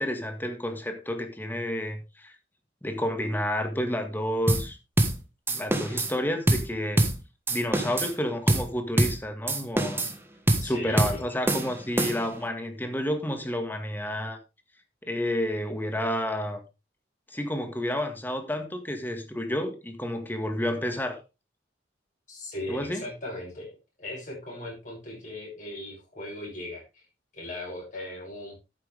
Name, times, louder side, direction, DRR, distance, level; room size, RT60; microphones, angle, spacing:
voice 1, 0.0-2.3 2.8-4.8 5.5-7.0 7.5-10.0 10.6-14.4 15.0-16.6 17.3-21.2 22.7-23.0, left 1 dB, 10° left, 1.8 m, -30 dB
sound 1, 4.5-4.7 5.0-5.2 5.5-6.1 6.5-6.7 7.0-7.2 7.5-8.1 8.5-8.7 9.0-9.2 9.5-10.2 10.5-10.7 11.0-11.2 11.5-12.4, right 1 dB, 15° right, 1.5 m, -24 dB
voice 2, 10.6-11.2 22.3-27.1 27.3-28.6, left 1 dB, 45° left, 7.6 m, -38 dB
12.0 x 9.1 x 3.5 m
head